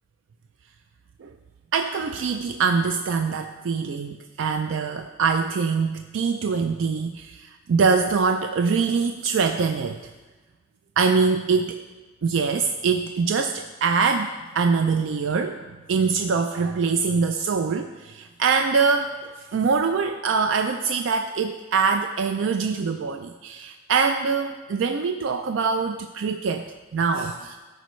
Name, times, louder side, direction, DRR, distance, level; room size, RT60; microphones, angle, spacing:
voice 1, 1.7-10.0 11.0-11.8 12.2-15.6 15.9-19.2 19.5-27.6, right 5 dB, 85° right, 6 dB, 0.4 m, -23 dB
13.5 x 5.2 x 3.1 m, 1.3 s
head